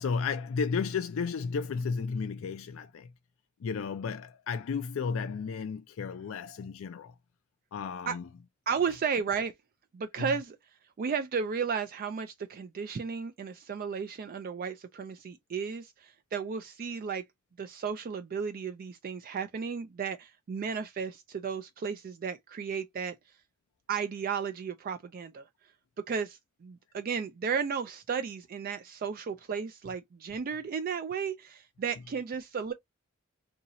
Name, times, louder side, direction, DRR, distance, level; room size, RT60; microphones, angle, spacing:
voice 1, 0.0-3.1 3.6-7.1 7.7-8.3 10.2-10.3, left 5 dB, 70° left, 0.4 m, -33 dB
voice 2, 8.7-9.5 9.9-10.6 11.0-17.2 17.6-23.2 23.9-25.5 26.0-32.7, right 6 dB, 45° right, 0.3 m, -34 dB
2.8 x 2.7 x 3.9 m
head